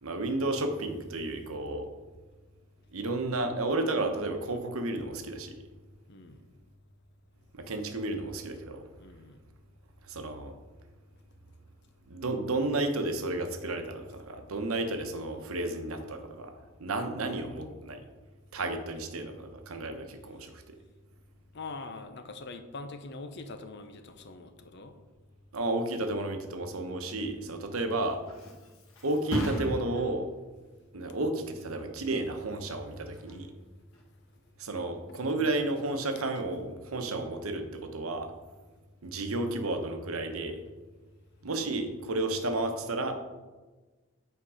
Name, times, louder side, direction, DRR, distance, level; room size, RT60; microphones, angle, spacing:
voice 1, 0.0-1.9 2.9-5.7 7.5-8.9 10.1-10.5 12.1-16.5 16.8-18.0 18.5-20.8 25.5-28.2 29.0-30.3 30.9-33.5 34.6-38.3 39.0-40.6 41.4-43.1, right 2 dB, 80° right, 6 dB, 0.9 m, -32 dB
voice 2, 6.1-6.4 9.0-9.4 21.5-25.0 35.1-35.2, left 3 dB, 50° left, 8 dB, 0.7 m, -43 dB
Thump thud, 27.7-35.2 35.6-36.0, equal, 70° left, 1.6 m, -40 dB
8.6 x 4.5 x 4.9 m, 1.3 s
head